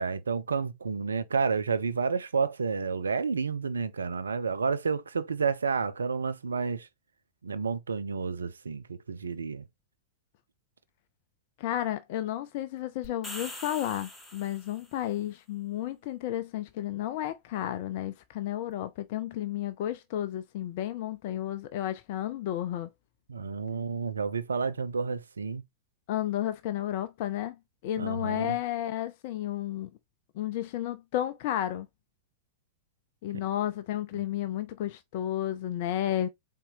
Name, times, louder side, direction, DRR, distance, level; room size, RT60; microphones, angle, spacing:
voice 1, 0.0-6.9 7.4-9.6 23.3-25.6 28.0-28.6, right 5 dB, 75° right, 0.4 m, -30 dB
voice 2, 11.6-22.9 26.1-27.6 27.8-29.9 30.4-31.9 33.2-36.3, left 12 dB, 50° left, 0.4 m, -32 dB
sound 1, 13.0-15.0, left 1 dB, ahead, 2.0 m, -43 dB
4.2 x 3.7 x 2.5 m
figure-of-eight pair, 95°, 0 cm